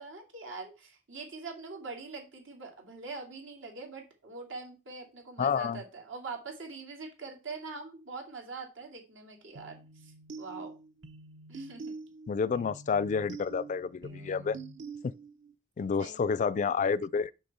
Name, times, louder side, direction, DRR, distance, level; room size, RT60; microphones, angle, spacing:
voice 1, 0.0-10.7 11.5-11.9 14.0-14.5 16.0-16.3, right 4 dB, 90° right, 2.6 m, -43 dB
voice 2, 5.4-5.8 12.3-14.6 15.0-15.1 15.8-17.3, left 5 dB, 40° left, 0.3 m, -29 dB
sound 1, 9.5-15.5, right 3 dB, 70° right, 0.9 m, -46 dB
6.5 x 6.0 x 4.2 m
head